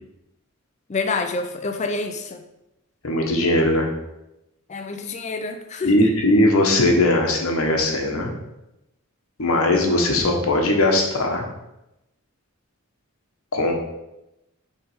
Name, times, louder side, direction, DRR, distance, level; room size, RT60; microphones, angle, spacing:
voice 1, 0.9-2.4 4.7-5.9, left 3 dB, 30° left, 6 dB, 0.4 m, -27 dB
voice 2, 3.0-3.9 5.8-8.3 9.4-11.4 13.5-13.7, left 1 dB, 70° left, 2 dB, 1.1 m, -19 dB
6.1 x 3.4 x 4.8 m, 0.91 s
head